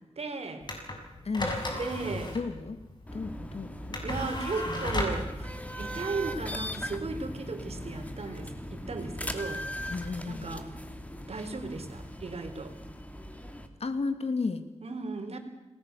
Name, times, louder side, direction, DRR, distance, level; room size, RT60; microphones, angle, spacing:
voice 1, 0.2-0.7 1.7-2.4 4.0-9.6 10.3-10.7 11.3-12.7 14.8-15.4, right 3 dB, 65° right, 6 dB, 4.0 m, -36 dB
sound 1, 0.6-9.1, left 1 dB, 40° left, 6.5 m, -36 dB
voice 2, 1.2-1.6 2.3-2.8 3.1-4.0 4.7-5.0 9.9-10.6 13.8-14.7, left 4 dB, 65° left, 9 dB, 2.4 m, -33 dB
sound 2, 3.1-13.7, equal, 10° left, 2.9 m, -39 dB
27.5 x 20.0 x 6.9 m, 1.1 s
wide cardioid pair, 80°, 11 cm